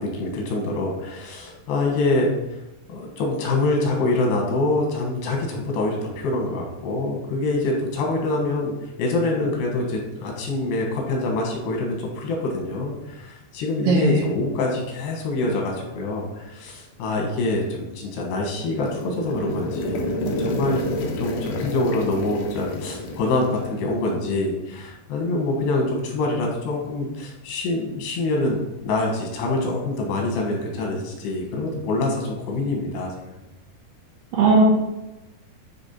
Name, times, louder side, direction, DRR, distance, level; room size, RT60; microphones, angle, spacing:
voice 1, 0.0-2.3 2.9-33.3, left 2 dB, 90° left, 0 dB, 3.4 m, -25 dB
voice 2, 13.9-14.2 34.3-34.6, right 3 dB, 70° right, -1 dB, 2.4 m, -17 dB
sound 1, 18.2-24.3, left 1 dB, 75° left, 1.9 m, -30 dB
9.1 x 3.3 x 4.3 m, 0.99 s
omnidirectional pair, 4.7 m